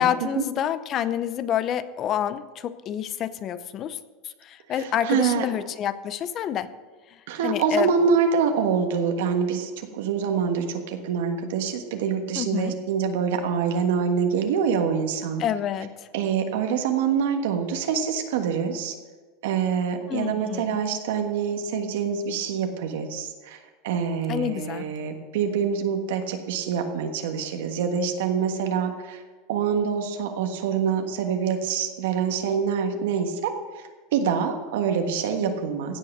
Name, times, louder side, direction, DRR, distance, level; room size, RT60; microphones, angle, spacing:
voice 1, 0.0-4.0 4.4-6.7 7.4-7.9 12.4-12.7 15.4-16.1 20.1-20.8 24.3-24.9, left 9 dB, 30° left, 15 dB, 0.5 m, -28 dB
voice 2, 4.8-5.4 7.3-15.4 16.1-18.9 19.4-23.6 23.8-29.2 29.5-33.5 34.1-36.0, right 6 dB, 80° right, 4 dB, 1.4 m, -25 dB
16.0 x 5.7 x 6.6 m, 1.3 s
supercardioid pair, 160°, 0 cm